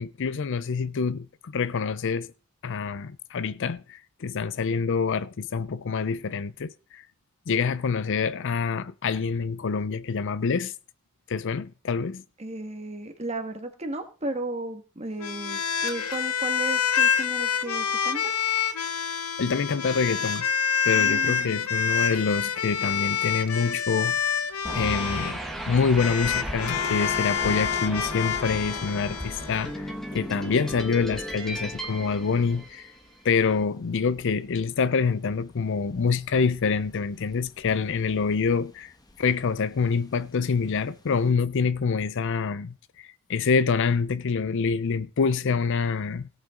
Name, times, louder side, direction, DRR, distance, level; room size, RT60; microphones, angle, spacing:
voice 1, 0.0-2.3 2.6-7.0 7.5-10.7 11.3-12.2 19.4-20.5 20.9-24.2 24.7-25.4 25.7-32.9 33.2-46.3, left 5 dB, 55° left, 0.5 m, -26 dB
voice 2, 12.4-18.3 20.9-21.6, right 2 dB, 30° right, 1.6 m, -34 dB
sound 1, 15.2-25.3 26.0-29.8, left 7 dB, 80° left, 1.0 m, -27 dB
sound 2, 23.9-41.3, left 1 dB, 20° left, 1.2 m, -47 dB
sound 3, 24.6-33.2, right 1 dB, ahead, 1.6 m, -36 dB
17.5 x 8.2 x 3.7 m
head